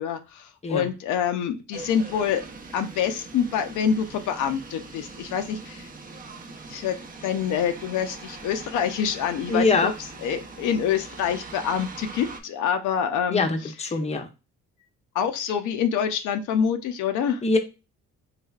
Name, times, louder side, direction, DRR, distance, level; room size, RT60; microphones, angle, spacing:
voice 1, 0.0-2.4 2.7-5.9 6.7-7.0 7.2-9.9 10.2-13.7 15.1-17.4, left 8 dB, 80° left, 7 dB, 0.5 m, -26 dB
sound 1, 1.7-12.4, right 3 dB, 30° right, 0.6 m, -42 dB
voice 2, 9.5-9.9 13.3-14.3 17.4-17.6, left 3 dB, 20° left, 5 dB, 0.6 m, -23 dB
3.2 x 3.2 x 2.3 m, 0.29 s
cardioid pair, 90°, 30 cm